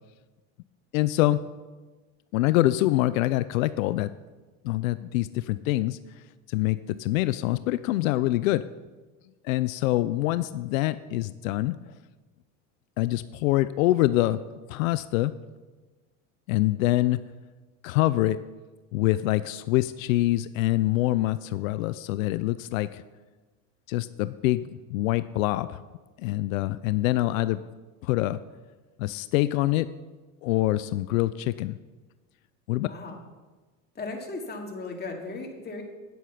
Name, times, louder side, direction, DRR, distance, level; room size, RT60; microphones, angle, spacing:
voice 1, 0.9-1.4 2.3-4.1 4.6-6.0 6.5-8.7 9.4-11.8 13.0-14.4 14.7-15.4 16.5-17.2 17.8-18.4 18.9-23.0 23.9-25.8 26.2-27.6 28.0-28.4 29.0-29.9 30.4-31.8 32.7-32.9, left 16 dB, 90° left, 15 dB, 0.5 m, -25 dB
voice 2, 32.9-33.2 33.9-35.8, left 3 dB, 25° left, 1 dB, 2.3 m, -36 dB
9.4 x 8.1 x 5.8 m, 1.2 s
supercardioid pair, 95°, 40 cm